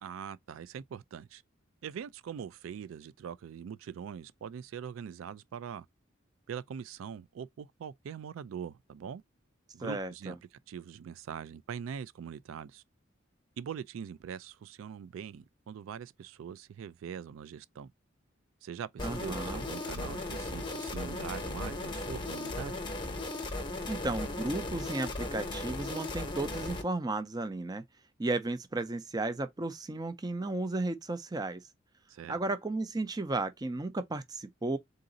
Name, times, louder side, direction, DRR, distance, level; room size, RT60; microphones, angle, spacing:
voice 1, 0.0-1.4 1.8-5.9 6.5-9.2 9.7-10.4 10.7-12.8 13.6-17.9 18.6-22.8 32.1-32.4, right 7 dB, 80° right, 0.3 m, -42 dB
voice 2, 9.8-10.3 19.0-19.6 23.9-27.8 28.2-31.6 32.3-34.8, right 2 dB, 20° right, 0.5 m, -34 dB
sound 1, 19.0-26.8, left 2 dB, 25° left, 0.8 m, -37 dB
3.9 x 2.6 x 3.8 m
head